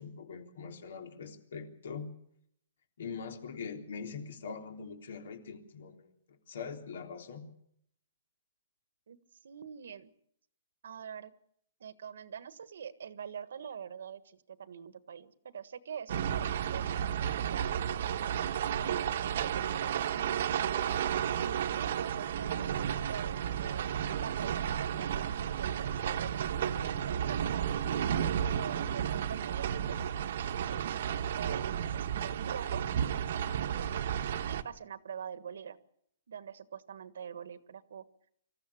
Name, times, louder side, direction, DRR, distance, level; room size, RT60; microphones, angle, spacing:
voice 1, 0.0-2.1 3.0-6.1 6.5-7.5, left 5 dB, 70° left, 5 dB, 3.5 m, -42 dB
voice 2, 9.1-10.1 10.8-11.3 11.8-20.9 21.7-26.5 27.0-27.6 28.4-30.0 30.6-32.8 33.1-35.8 36.3-38.0, right 7 dB, 80° right, 13 dB, 1.5 m, -45 dB
sound 1, 16.1-34.6, right 9 dB, 55° right, 1.2 m, -32 dB
25.0 x 14.5 x 8.6 m, 0.70 s
hypercardioid pair, 170°, 0 cm